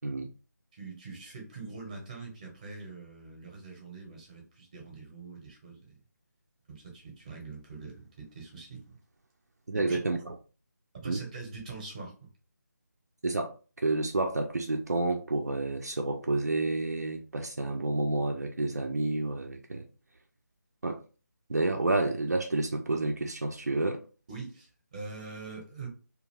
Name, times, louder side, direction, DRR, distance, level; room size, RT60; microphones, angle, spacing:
voice 1, 0.7-6.0 6.7-9.0 9.7-10.0 11.0-12.3 24.3-25.9, right 4 dB, 20° right, 0 dB, 0.8 m, -43 dB
voice 2, 9.7-10.4 11.0-11.2 13.2-19.9 20.8-21.0 21.5-24.0, right 2 dB, 60° right, 3 dB, 0.4 m, -30 dB
2.4 x 2.4 x 3.2 m, 0.36 s
figure-of-eight pair, 155°, 10 cm